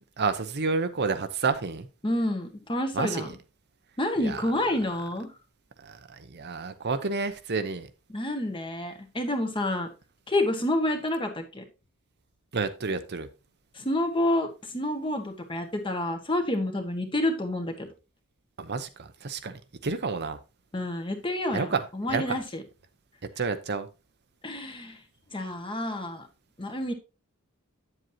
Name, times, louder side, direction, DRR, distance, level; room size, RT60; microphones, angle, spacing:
voice 1, 0.2-1.9 2.9-3.3 4.2-4.4 5.8-7.9 12.5-13.3 18.6-20.4 21.5-21.8 22.1-22.4 23.4-23.9, right 4 dB, 50° right, 10 dB, 0.8 m, -30 dB
voice 2, 2.0-3.4 4.0-5.3 8.1-9.9 10.3-11.6 13.7-17.9 20.7-22.6 24.4-25.0 25.3-26.3 26.6-26.9, left 1 dB, 25° left, 5 dB, 1.6 m, -29 dB
9.4 x 7.7 x 2.8 m, 0.29 s
head